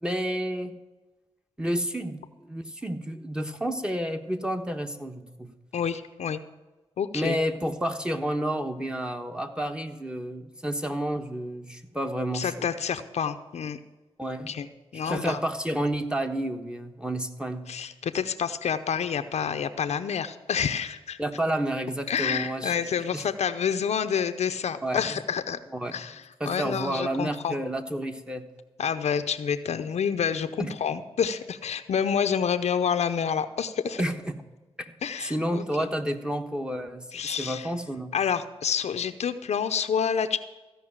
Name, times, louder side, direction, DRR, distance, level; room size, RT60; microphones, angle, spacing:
voice 1, 0.0-0.7 1.6-5.5 7.1-12.5 14.2-14.5 15.0-17.6 21.2-22.7 23.1-23.2 24.8-25.2 25.7-26.0 26.4-28.4 30.6-30.7 34.0-34.4 34.8-34.9 35.2-38.1, right 1 dB, 10° right, 5 dB, 1.3 m, -30 dB
voice 2, 5.7-6.4 7.0-7.4 12.3-13.8 14.5-14.7 14.9-15.4 17.7-21.2 22.1-25.6 25.9-27.6 28.8-34.0 35.0-35.9 37.1-37.7 38.1-40.4, left 7 dB, 75° left, 9 dB, 0.7 m, -28 dB
15.0 x 5.4 x 8.8 m, 1.2 s
cardioid pair, 50°, 11 cm